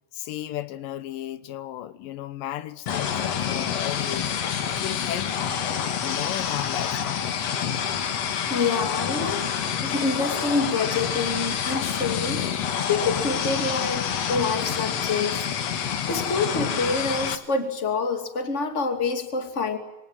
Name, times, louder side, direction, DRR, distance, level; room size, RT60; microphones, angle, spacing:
voice 1, 0.1-4.3 4.6-5.6 6.0-7.3 12.5-12.7, left 12 dB, 75° left, 2.6 m, -35 dB
sound 1, 2.9-17.4, left 8 dB, 55° left, 2.3 m, -27 dB
voice 2, 8.5-12.5 12.8-15.4 16.1-19.8, left 4 dB, 20° left, 2.6 m, -27 dB
26.5 x 24.0 x 9.0 m
omnidirectional pair, 4.1 m